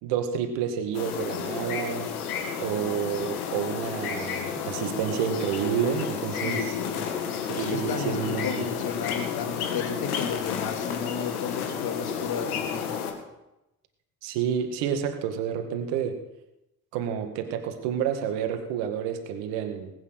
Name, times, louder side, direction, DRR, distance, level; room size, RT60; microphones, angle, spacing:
voice 1, 0.0-2.1 2.6-6.8 7.5-8.7 14.2-16.2 16.9-19.9, right 8 dB, 65° right, 6 dB, 1.9 m, -29 dB
sound 1, 0.9-13.1, left 7 dB, 80° left, 2.1 m, -31 dB
voice 2, 6.4-7.1 7.5-13.0, left 6 dB, 55° left, 5 dB, 2.7 m, -34 dB
19.5 x 8.9 x 6.3 m, 0.93 s
figure-of-eight pair, 50°, 45 cm